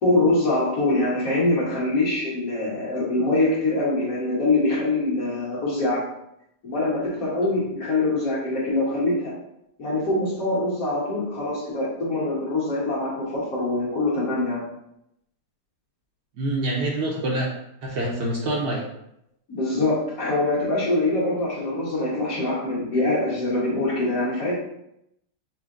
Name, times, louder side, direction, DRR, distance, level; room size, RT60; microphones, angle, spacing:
voice 1, 0.0-6.0 6.6-9.3 9.8-14.6 19.5-24.5, left 2 dB, 50° left, -7 dB, 1.8 m, -24 dB
voice 2, 16.4-17.5 17.8-18.9, right 1 dB, 65° right, -2 dB, 1.1 m, -26 dB
5.7 x 2.1 x 3.7 m, 0.80 s
omnidirectional pair, 2.0 m